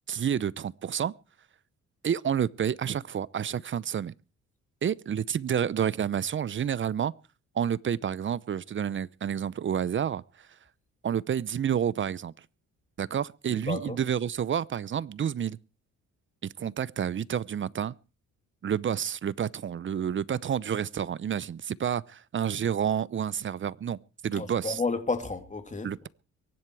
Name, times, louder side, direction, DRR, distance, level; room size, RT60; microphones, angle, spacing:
voice 1, 0.1-1.1 2.0-4.1 4.8-7.1 7.6-10.2 11.0-12.3 13.0-15.6 16.6-17.9 18.6-24.8 25.8-26.1, right 8 dB, 40° right, 0.7 m, -29 dB
voice 2, 13.5-14.0 24.3-25.9, left 3 dB, 25° left, 3.0 m, -31 dB
23.5 x 11.0 x 4.8 m
cardioid pair, 90°, 30 cm